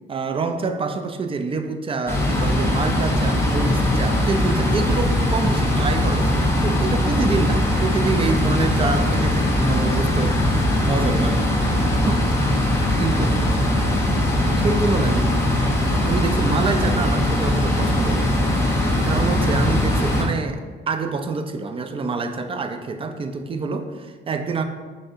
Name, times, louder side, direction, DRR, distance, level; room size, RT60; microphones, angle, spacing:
voice 1, 0.1-11.4 12.0-12.3 13.0-13.4 14.6-15.3 16.0-18.3 19.0-20.6 20.9-24.6, right 4 dB, 30° right, 7 dB, 0.3 m, -26 dB
sound 1, 2.1-20.2, left 1 dB, 15° left, 0.7 m, -20 dB
5.8 x 2.5 x 2.6 m, 1.4 s
cardioid pair, 90°, 20 cm